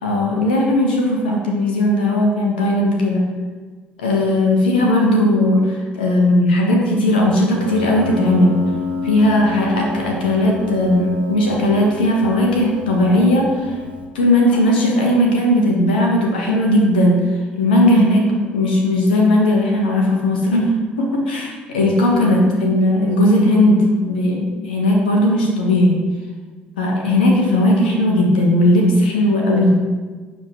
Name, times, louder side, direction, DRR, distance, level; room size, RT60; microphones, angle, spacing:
voice 1, 0.0-3.2 4.0-8.6 9.0-13.7 14.1-17.2 17.6-26.0 26.8-29.8, left 1 dB, 75° left, 0 dB, 1.3 m, -17 dB
Piano, 7.6-14.1, left 3 dB, 85° right, 0.9 m, -29 dB
11.5 x 7.5 x 3.0 m, 1.4 s
figure-of-eight pair, 50°, 5 cm